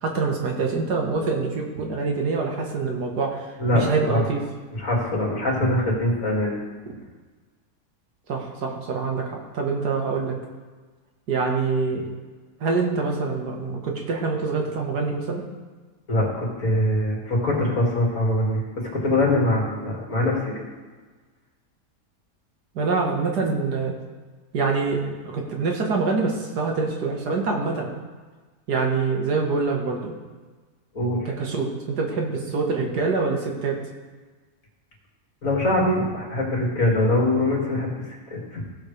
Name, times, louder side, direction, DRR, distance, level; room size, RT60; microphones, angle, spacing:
voice 1, 0.0-4.4 8.3-10.4 11.3-12.0 12.6-15.4 22.8-23.9 24.5-27.9 28.7-30.1 31.3-33.8, right 4 dB, 80° right, 1 dB, 2.0 m, -25 dB
voice 2, 3.6-4.2 4.8-6.6 16.1-18.6 18.9-20.5 30.9-31.3 35.4-38.6, left 1 dB, 55° left, -3 dB, 2.8 m, -23 dB
16.5 x 7.3 x 3.3 m, 1.4 s
omnidirectional pair, 1.7 m